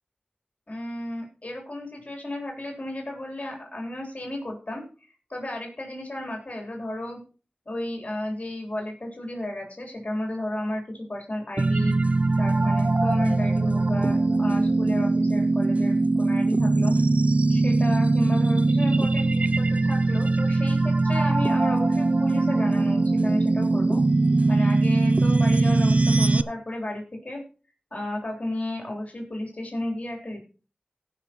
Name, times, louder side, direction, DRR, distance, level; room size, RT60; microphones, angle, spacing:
voice 1, 0.7-4.9 5.3-7.2 7.6-11.9 12.4-16.9 17.5-24.0 24.5-27.4 27.9-30.4, left 1 dB, 50° left, 1 dB, 3.4 m, -33 dB
sound 1, 11.6-26.4, right 3 dB, 50° right, 0.6 m, -21 dB
16.5 x 5.9 x 4.3 m, 0.36 s
wide cardioid pair, 45°, 3 cm